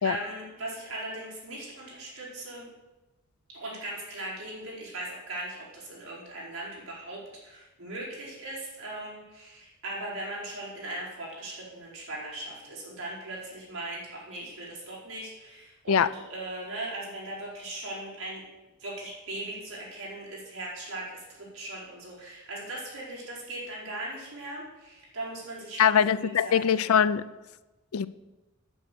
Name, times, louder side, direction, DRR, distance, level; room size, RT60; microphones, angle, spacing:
voice 1, 0.0-2.7 3.5-18.4 18.8-26.8, right 1 dB, 65° right, -6 dB, 4.8 m, -39 dB
voice 2, 25.8-27.2 27.9-28.1, left 8 dB, 75° left, 16 dB, 0.4 m, -22 dB
9.3 x 8.3 x 7.0 m, 1.1 s
head